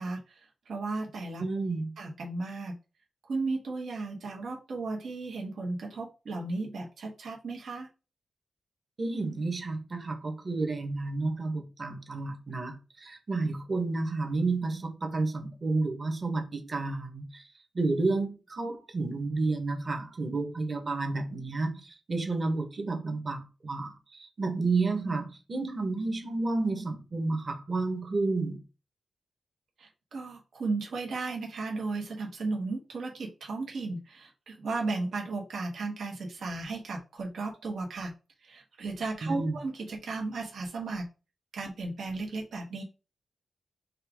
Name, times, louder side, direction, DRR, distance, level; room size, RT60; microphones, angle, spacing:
voice 1, 0.0-1.4 2.0-2.7 3.3-7.9 29.8-38.1 38.4-41.1 41.5-42.8, right 3 dB, 75° right, 1.2 m, -35 dB
voice 2, 1.4-1.9 9.0-17.5 17.7-28.6 39.2-39.6, right 3 dB, 35° right, 1.1 m, -31 dB
5.4 x 2.4 x 3.5 m
wide cardioid pair, 125°, 0 cm